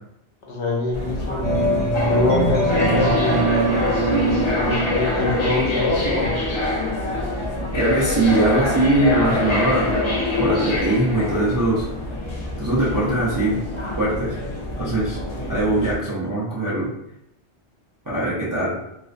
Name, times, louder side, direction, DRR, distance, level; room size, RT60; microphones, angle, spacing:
voice 1, 0.4-1.5 2.1-3.5 4.7-6.4, left 2 dB, 80° left, -2 dB, 0.9 m, -23 dB
sound 1, 0.9-15.9, left 2 dB, 45° left, 0.3 m, -25 dB
sound 2, 1.4-7.3, right 2 dB, 65° right, 1.0 m, -24 dB
voice 2, 7.7-9.9 10.4-11.9 12.6-13.6 14.0-14.4 14.8-15.2 15.5-16.9 18.1-18.8, right 2 dB, 35° right, -8 dB, 0.3 m, -21 dB
2.5 x 2.0 x 2.4 m, 0.80 s
omnidirectional pair, 1.2 m